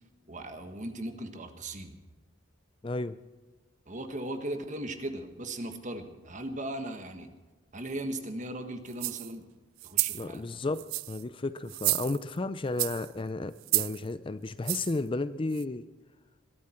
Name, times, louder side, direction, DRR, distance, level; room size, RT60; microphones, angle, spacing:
voice 1, 0.3-2.0 3.9-7.3 7.7-9.4 9.8-10.4, right 1 dB, 35° right, 7 dB, 1.6 m, -38 dB
voice 2, 2.8-3.2 10.1-15.9, left 2 dB, 25° left, 14 dB, 0.4 m, -33 dB
sound 1, 8.9-9.3 9.8-10.3 10.7-11.2 11.7-12.4 12.8-13.1 13.6-14.0 14.6-15.0 15.6-15.7, right 21 dB, 85° right, 0.4 m, -30 dB
21.5 x 12.0 x 4.5 m, 1.3 s
head